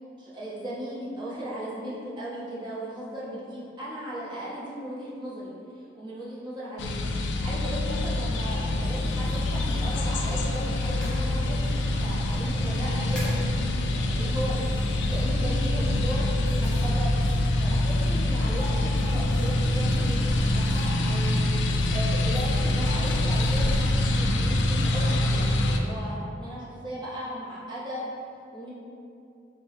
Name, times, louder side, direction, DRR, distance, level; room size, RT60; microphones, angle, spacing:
voice 1, 0.2-13.3 14.1-21.5 21.9-28.1 28.5-28.7, right 1 dB, 25° right, -8 dB, 0.8 m, -37 dB
sound 1, 6.8-25.8, left 1 dB, 75° left, 0.3 m, -25 dB
sound 2, 8.8-23.9, equal, 5° left, 0.6 m, -41 dB
4.3 x 2.1 x 3.0 m, 2.6 s
head